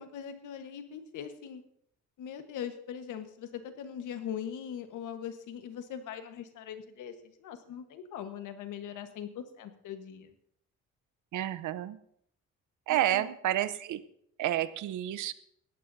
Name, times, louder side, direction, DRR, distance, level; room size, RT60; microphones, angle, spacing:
voice 1, 0.0-1.6 2.2-10.3 12.9-13.2, left 8 dB, 85° left, 8 dB, 1.4 m, -41 dB
voice 2, 11.3-12.0 12.9-14.0 14.4-15.3, right 13 dB, 80° right, 14 dB, 0.8 m, -30 dB
19.5 x 14.5 x 2.7 m, 0.71 s
cardioid pair, 90°, 30 cm